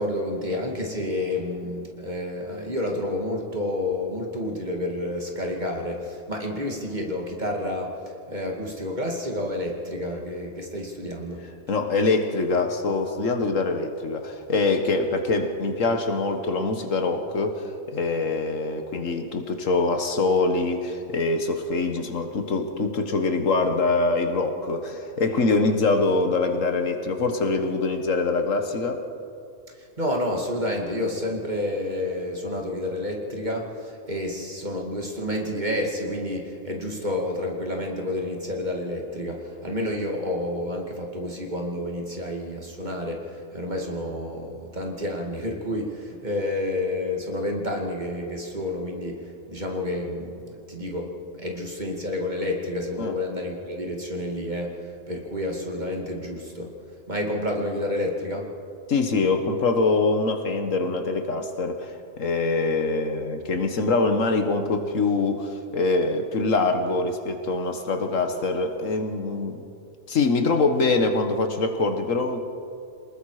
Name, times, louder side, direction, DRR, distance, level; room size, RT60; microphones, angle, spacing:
voice 1, 0.0-8.0 8.3-11.5 30.0-56.7 57.1-58.5, left 1 dB, 35° right, 0 dB, 2.4 m, -29 dB
voice 2, 11.7-29.0 39.7-39.8 53.0-53.2 58.9-69.6 70.1-72.4, left 3 dB, 75° left, 6 dB, 1.8 m, -24 dB
28.0 x 20.0 x 4.9 m, 2.5 s
omnidirectional pair, 1.3 m